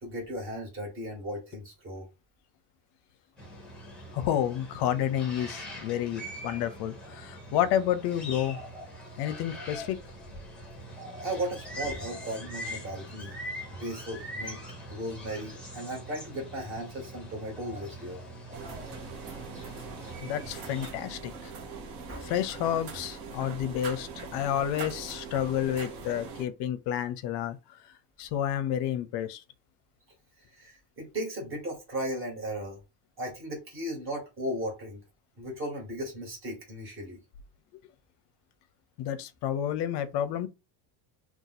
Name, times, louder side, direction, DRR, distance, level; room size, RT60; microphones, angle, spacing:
voice 1, 0.0-2.1 11.2-13.3 13.7-18.2 22.1-22.3 30.6-32.8 33.2-35.0 35.4-37.2, right 1 dB, 25° right, 1.4 m, -36 dB
sound 1, 3.4-20.9, equal, ahead, 0.8 m, -43 dB
voice 2, 4.1-8.6 9.2-10.0 20.2-21.5 22.2-27.6 27.8-27.9 28.2-29.4 37.7-37.8 39.0-40.5, left 10 dB, 55° left, 0.6 m, -30 dB
sound 2, 18.5-26.4, right 5 dB, 60° right, 0.9 m, -42 dB
2.6 x 2.4 x 4.0 m
cardioid pair, 160°, 50 cm